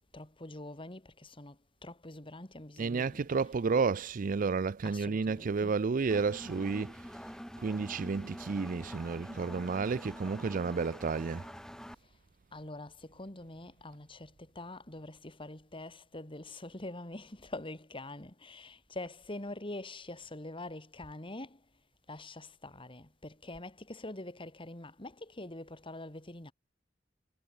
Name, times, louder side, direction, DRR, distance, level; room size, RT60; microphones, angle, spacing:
voice 1, 0.1-3.3 4.8-5.7 12.5-21.6 22.1-26.5, left 2 dB, 30° left, 2.6 m, -45 dB
voice 2, 2.8-6.9 7.6-11.4, right 4 dB, 45° right, 0.4 m, -31 dB
Engine, 6.1-11.9, equal, 5° left, 3.0 m, -46 dB
head